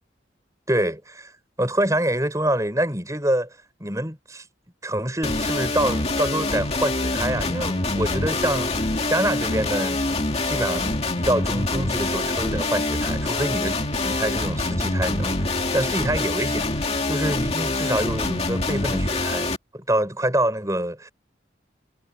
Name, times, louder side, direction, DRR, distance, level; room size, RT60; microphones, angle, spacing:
voice 1, 0.7-1.3 1.6-3.5 3.8-4.4 4.8-21.1, right 1 dB, 15° right, 6.2 m, -26 dB
sound 1, 5.2-19.6, left 2 dB, 35° left, 2.5 m, -25 dB
head